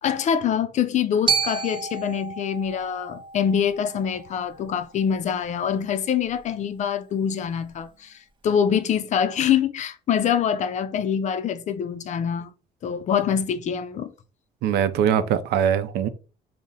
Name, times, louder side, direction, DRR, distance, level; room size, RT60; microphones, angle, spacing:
voice 1, 0.0-12.5 12.8-14.1, left 8 dB, 45° left, 0.4 m, -25 dB
Glockenspiel, 1.3-5.4, right 5 dB, 30° right, 0.7 m, -31 dB
voice 2, 14.6-16.1, right 8 dB, 75° right, 0.5 m, -22 dB
3.6 x 2.0 x 4.0 m
cardioid pair, 110°, 17 cm